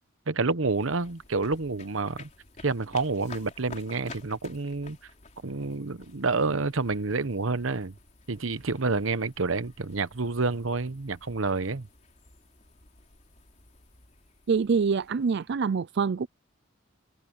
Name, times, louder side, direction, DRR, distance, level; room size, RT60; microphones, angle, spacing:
voice 1, 0.3-2.3 2.6-5.0 5.4-7.9 8.3-11.9, right 3 dB, 75° right, 1.0 m, -28 dB
sound 1, 0.6-15.7, left 3 dB, 35° left, 3.8 m, -52 dB
voice 2, 14.5-16.3, right 5 dB, 55° right, 0.4 m, -25 dB
head